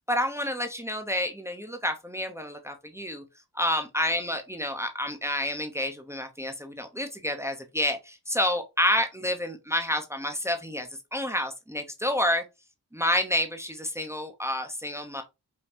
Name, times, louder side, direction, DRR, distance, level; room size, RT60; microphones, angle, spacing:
voice 1, 0.1-3.2 3.5-12.4 12.9-15.2, left 1 dB, 5° right, 0.8 m, -29 dB
5.3 x 2.3 x 2.9 m
cardioid pair, 45°, 40 cm